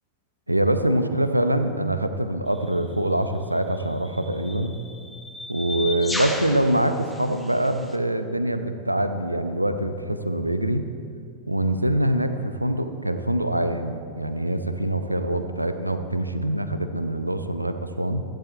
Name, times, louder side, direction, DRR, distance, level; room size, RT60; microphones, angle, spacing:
voice 1, 0.5-4.8 5.5-10.9 11.5-18.2, right 1 dB, 85° right, 9 dB, 0.6 m, -24 dB
sound 1, 2.5-2.7 3.7-8.0, left 1 dB, 5° left, 1.0 m, -35 dB
14.0 x 10.5 x 4.5 m, 2.4 s
figure-of-eight pair, 90°, 0 cm